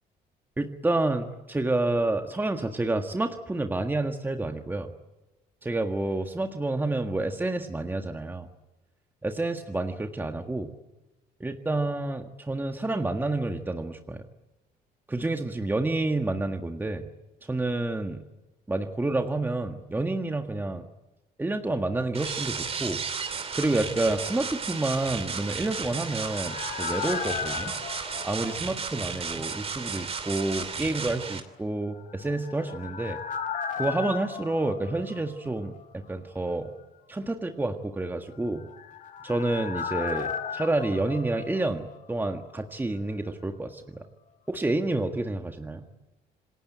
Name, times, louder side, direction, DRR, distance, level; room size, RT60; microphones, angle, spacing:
voice 1, 0.6-4.9 5.6-8.5 9.2-10.7 11.4-14.2 15.1-17.1 17.5-18.2 18.7-20.8 21.4-23.0 23.5-27.7 28.2-33.2 33.8-36.7 37.1-38.6 39.2-44.0 44.5-45.9, right 2 dB, 10° right, 5 dB, 1.7 m, -29 dB
sound 1, 22.1-31.4, right 5 dB, 35° right, 2.9 m, -34 dB
sound 2, 25.5-29.3 29.6-29.7 32.1-35.8 36.1-36.2 38.4-42.3 42.5-42.6, left 7 dB, 50° left, 2.5 m, -36 dB
27.5 x 20.0 x 9.0 m, 1.1 s
cardioid pair, 110°, 17 cm